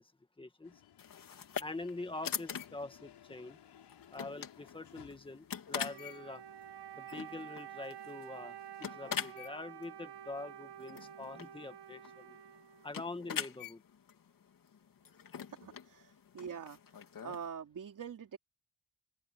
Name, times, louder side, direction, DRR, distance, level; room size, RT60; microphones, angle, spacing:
voice 1, 0.4-0.8 1.6-3.6 4.1-6.4 7.0-12.4 12.8-13.8, left 2 dB, 15° left, 1.8 m, -44 dB
sound 1, 0.6-7.7, left 10 dB, 85° left, 6.9 m, -61 dB
sound 2, 1.0-17.5, left 7 dB, 55° left, 3.1 m, -45 dB
Wind instrument woodwind instrument, 5.7-13.3, right 10 dB, 80° right, 1.4 m, -50 dB
voice 2, 15.6-16.8 17.2-18.4, right 7 dB, 50° right, 3.4 m, -44 dB
open air
wide cardioid pair, 165°, 40 cm